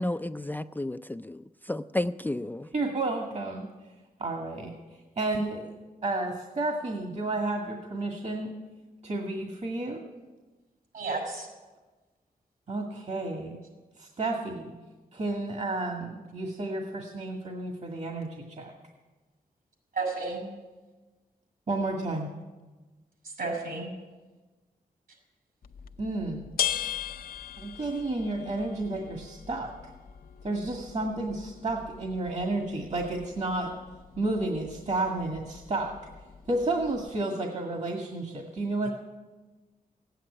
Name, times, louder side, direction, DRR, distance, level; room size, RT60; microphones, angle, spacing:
voice 1, 0.0-2.7, left 1 dB, 10° left, 10 dB, 0.4 m, -32 dB
voice 2, 2.7-3.7 4.2-4.7 5.2-5.7 6.0-8.5 9.0-10.0 12.7-13.6 14.0-14.7 15.1-18.7 21.7-22.3 26.0-26.5 27.6-29.7 30.4-33.7 34.2-35.9 36.5-38.9, right 2 dB, 50° right, 2 dB, 1.9 m, -31 dB
voice 3, 10.9-11.5 19.9-20.4 23.2-23.9 38.8-38.9, right 3 dB, 75° right, 1 dB, 6.5 m, -32 dB
sound 1, 25.6-37.1, left 9 dB, 75° left, 0.7 m, -40 dB
16.0 x 9.2 x 9.8 m, 1.2 s
cardioid pair, 80°, 15 cm